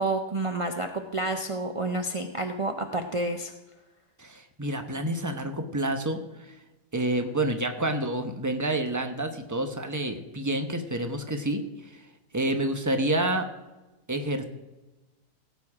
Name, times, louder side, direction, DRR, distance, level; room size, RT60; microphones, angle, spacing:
voice 1, 0.0-3.5, right 2 dB, 45° right, 5 dB, 0.4 m, -29 dB
voice 2, 4.2-6.2 6.9-11.6 12.3-13.5 14.1-14.4, right 1 dB, 15° right, 7 dB, 0.8 m, -28 dB
17.0 x 8.1 x 4.9 m, 1.1 s
omnidirectional pair, 1.7 m